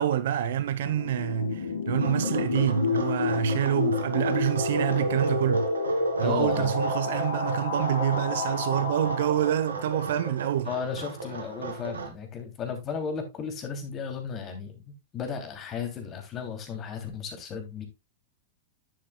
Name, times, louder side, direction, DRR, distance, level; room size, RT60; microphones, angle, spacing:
voice 1, 0.0-5.7 6.2-10.7, right 10 dB, 70° right, 1.0 m, -27 dB
sound 1, 0.8-10.3, left 3 dB, 85° left, 3.8 m, -30 dB
sound 2, 2.0-12.1, right 4 dB, 90° right, 1.9 m, -38 dB
voice 2, 6.2-6.8 10.6-17.8, left 6 dB, 30° left, 3.1 m, -35 dB
10.5 x 7.6 x 2.3 m
hypercardioid pair, 105°, 0 cm